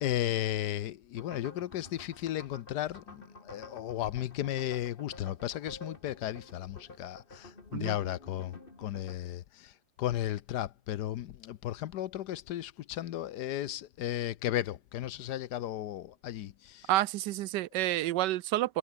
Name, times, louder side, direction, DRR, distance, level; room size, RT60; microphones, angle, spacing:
voice 1, 0.0-9.7 10.0-16.9, left 12 dB, 70° left, 1.3 m, -35 dB
sound 1, 1.2-9.2, left 2 dB, 30° left, 3.4 m, -51 dB
voice 2, 16.9-18.8, right 15 dB, 80° right, 1.2 m, -29 dB
omnidirectional pair, 1.9 m